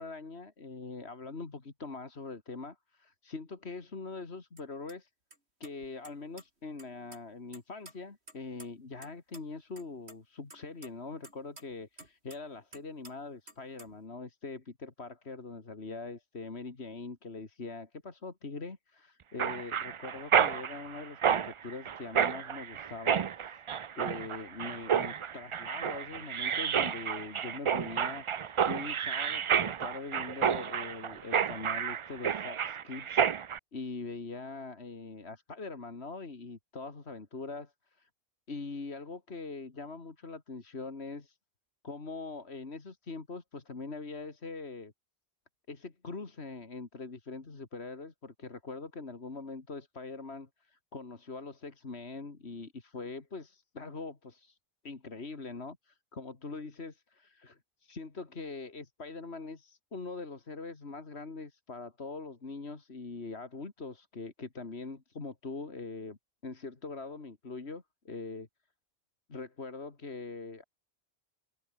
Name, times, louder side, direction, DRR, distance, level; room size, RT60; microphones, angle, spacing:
voice 1, 0.0-5.1 5.6-23.6 24.0-33.2 33.7-38.1 38.5-41.4 41.8-44.9 45.7-54.6 54.8-68.5 69.3-70.6, left 3 dB, 75° left, 2.7 m, -43 dB
sound 1, 4.6-4.7 4.9-5.0 5.3-5.4 5.6-6.4 6.8-7.2 7.5-9.1 9.3-9.4 9.8-10.1 10.5-12.4 12.7-13.1 13.5-14.0, right 1 dB, 80° right, 7.1 m, -51 dB
Mechanisms, 19.4-33.6, right 8 dB, 55° right, 0.3 m, -30 dB
omnidirectional pair, 1.1 m